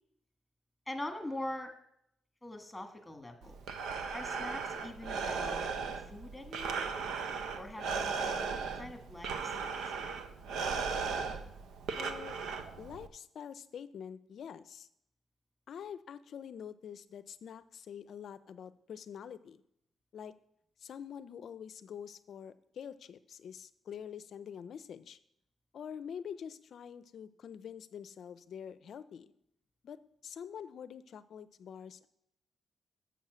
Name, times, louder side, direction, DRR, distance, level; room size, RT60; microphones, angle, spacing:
voice 1, 0.9-1.7 2.4-3.6 4.1-5.7 6.1-6.9 7.5-10.1, left 1 dB, 10° left, 5 dB, 1.6 m, -43 dB
Breathing, 3.4-13.1, right 5 dB, 80° right, 0.7 m, -37 dB
voice 2, 11.9-12.4 12.8-14.9 15.7-19.6 20.1-20.3 20.8-25.2 25.7-29.3 29.8-30.0 30.2-32.1, left 8 dB, 65° left, 15 dB, 0.5 m, -46 dB
7.2 x 7.2 x 6.2 m, 0.75 s
cardioid pair, 80°, 0 cm